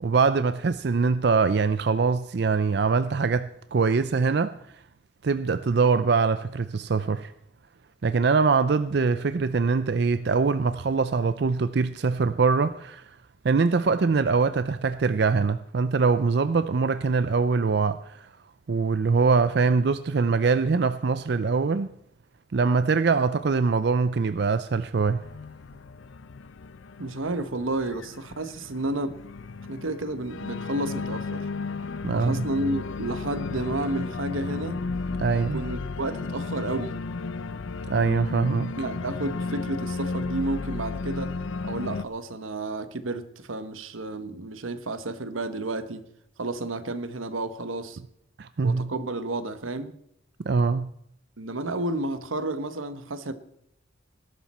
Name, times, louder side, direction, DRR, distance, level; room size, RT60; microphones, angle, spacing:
voice 1, 0.0-4.5 5.2-7.3 8.0-13.0 13.4-18.3 18.7-21.9 22.5-25.2 32.0-32.5 35.2-35.6 37.9-38.7 48.4-48.9 50.5-50.9, right 4 dB, 55° right, 0.4 m, -23 dB
Organ, 25.2-42.0, left 4 dB, 75° left, 0.6 m, -34 dB
voice 2, 27.0-29.2 29.7-31.5 32.1-34.8 35.3-37.0 38.8-41.4 41.6-46.1 46.4-48.0 48.6-50.0 51.4-53.3, right 2 dB, 85° right, 1.1 m, -31 dB
19.5 x 12.0 x 4.3 m
head